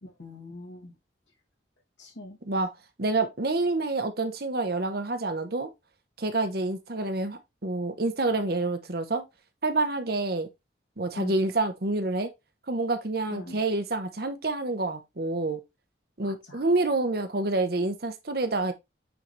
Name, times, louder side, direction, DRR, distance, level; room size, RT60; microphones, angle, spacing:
voice 1, 0.0-0.9 2.0-2.4 11.2-11.3 13.3-13.6 16.2-16.6, left 1 dB, 75° left, 2.4 m, -42 dB
voice 2, 3.0-5.7 6.2-9.2 9.6-10.5 11.0-12.3 12.7-15.6 16.2-18.7, right 2 dB, 55° right, 1.0 m, -28 dB
9.0 x 4.0 x 3.3 m
head